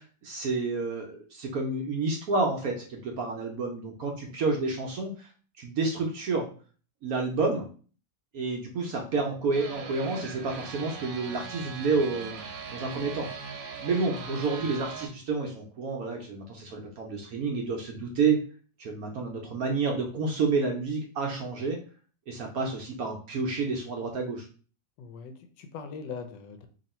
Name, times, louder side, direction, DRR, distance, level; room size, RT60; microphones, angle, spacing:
voice 1, 0.0-5.3 5.6-6.5 7.0-7.7 8.3-13.3 13.8-18.4 18.8-21.8 22.3-24.5, right 4 dB, 65° right, 1 dB, 1.0 m, -29 dB
sound 1, 9.5-15.1, right 5 dB, 80° right, 1.4 m, -40 dB
voice 2, 14.2-14.7 25.0-26.7, left 5 dB, 75° left, 8 dB, 1.2 m, -41 dB
3.0 x 2.8 x 4.1 m, 0.40 s
omnidirectional pair, 2.0 m